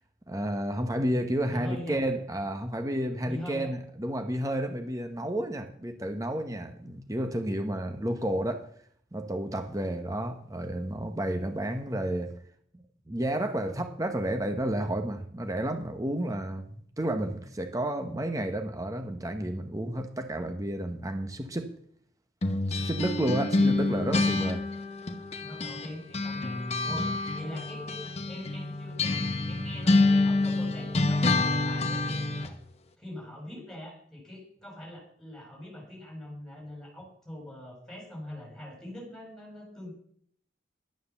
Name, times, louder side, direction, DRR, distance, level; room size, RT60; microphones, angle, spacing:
voice 1, 0.3-8.7 9.1-12.3 13.1-21.7 22.7-24.6 26.9-27.1, right 1 dB, 20° right, 1.0 m, -31 dB
voice 2, 1.5-2.0 3.2-3.7 23.5-23.6 25.4-32.6 33.0-39.9, left 1 dB, 5° left, 6.1 m, -43 dB
sound 1, 22.4-25.9 26.1-32.5, left 2 dB, 35° left, 1.1 m, -27 dB
11.5 x 9.4 x 7.1 m
head